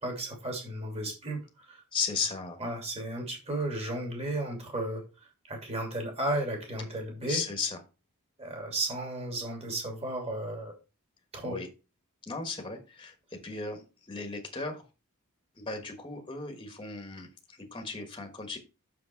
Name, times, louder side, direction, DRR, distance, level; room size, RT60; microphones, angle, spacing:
voice 1, 0.0-1.8 2.6-7.4 8.4-10.7 11.3-11.6, right 1 dB, 30° right, 2 dB, 2.8 m, -34 dB
voice 2, 1.9-2.6 7.3-7.8 11.4-11.7 12.3-13.1 13.4-13.8 14.1-14.8 15.6-18.6, left 4 dB, 20° left, 4 dB, 1.3 m, -35 dB
6.5 x 6.0 x 4.5 m, 0.30 s
head